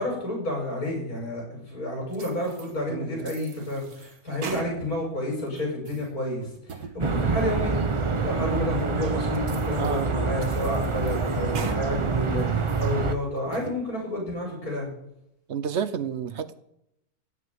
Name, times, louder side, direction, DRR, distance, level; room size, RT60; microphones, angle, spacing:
voice 1, 0.0-7.8 8.2-14.9, left 1 dB, 70° left, -1 dB, 6.3 m, -30 dB
sound 1, 2.1-2.7 3.2-5.1 5.5-6.1 6.5-7.0 7.4-7.5 8.1-8.2 8.8-8.9 9.3-10.0 10.4-11.8 12.2-12.9 13.4-13.8, right 5 dB, 75° right, 1.9 m, -41 dB
voice 2, 2.9-3.3 9.8-10.1 12.2-12.6 15.5-16.6, right 7 dB, 55° right, 14 dB, 0.9 m, -31 dB
sound 2, 7.0-13.2, right 4 dB, 30° right, 0.6 m, -26 dB
15.5 x 5.6 x 9.3 m, 0.79 s
omnidirectional pair, 1.6 m